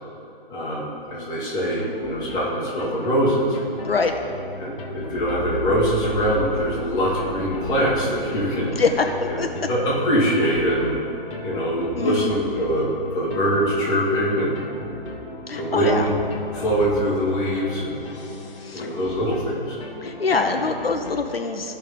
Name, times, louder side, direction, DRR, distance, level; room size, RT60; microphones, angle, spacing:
voice 1, 0.5-3.6 4.6-8.8 9.3-10.9 11.4-14.6 15.6-16.1 16.5-18.0 18.7-19.8, equal, 15° left, -7 dB, 1.6 m, -23 dB
sound 1, 1.6-21.2, left 2 dB, 30° left, 1.1 m, -35 dB
voice 2, 8.8-9.5 12.0-12.3 15.5-16.1 18.6-18.9 20.0-21.8, left 4 dB, 75° left, 5 dB, 0.7 m, -24 dB
13.5 x 5.5 x 3.7 m, 2.7 s
figure-of-eight pair, 135°, 30 cm